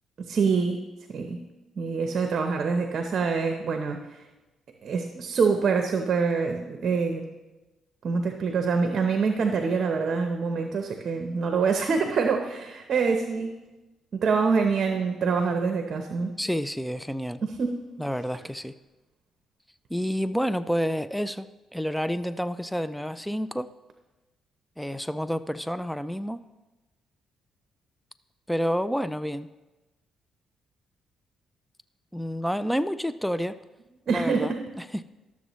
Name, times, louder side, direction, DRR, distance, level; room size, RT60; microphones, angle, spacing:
voice 1, 0.3-0.8 1.1-1.4 1.8-4.2 4.8-7.3 8.0-13.5 14.1-16.3 17.4-17.7 34.1-34.6, right 5 dB, 55° right, 4 dB, 0.8 m, -25 dB
voice 2, 16.4-17.4 18.0-18.7 19.9-21.5 21.7-23.7 24.8-26.4 28.5-29.5 32.1-33.6 34.1-35.0, equal, ahead, 13 dB, 0.3 m, -29 dB
12.5 x 7.2 x 3.1 m, 1.1 s
cardioid pair, 90°, 0 cm